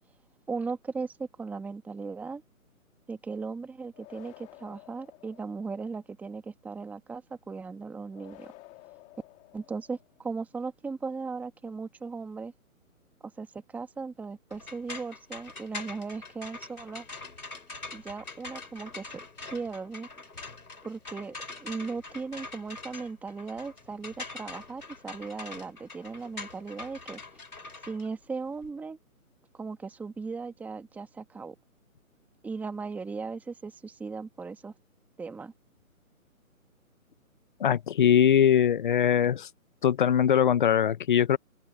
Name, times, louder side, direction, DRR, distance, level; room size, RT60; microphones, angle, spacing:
voice 1, 0.5-2.4 3.1-8.5 9.5-12.5 13.4-17.1 17.9-20.1 20.8-21.3 21.6-27.2 27.8-29.0 29.5-31.5 32.4-34.7 35.2-35.5, right 4 dB, 5° right, 1.8 m, -37 dB
sound 1, 3.9-6.0 8.1-10.2, left 21 dB, 15° left, 2.7 m, -53 dB
sound 2, 14.5-28.7, left 3 dB, 85° left, 4.3 m, -44 dB
voice 2, 37.6-39.5 39.8-41.4, left 9 dB, 35° left, 1.0 m, -22 dB
open air
figure-of-eight pair, 150°, 43 cm